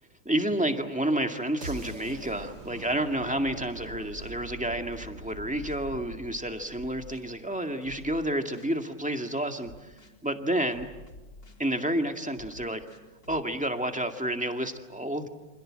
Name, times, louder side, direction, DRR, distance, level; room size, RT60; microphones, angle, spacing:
voice 1, 0.3-9.9 10.2-10.9 11.6-12.8 13.3-15.3, right 1 dB, 5° right, 5 dB, 1.9 m, -30 dB
sound 1, 1.6-7.6, right 2 dB, 65° right, 2.8 m, -43 dB
sound 2, 2.0-3.0 3.8-4.4 4.9-5.9 6.7-7.2 7.8-8.8 9.6-10.2 10.7-11.7 12.3-13.4, left 2 dB, 75° left, 4.6 m, -50 dB
29.0 x 27.0 x 7.6 m, 1.1 s
omnidirectional pair, 1.9 m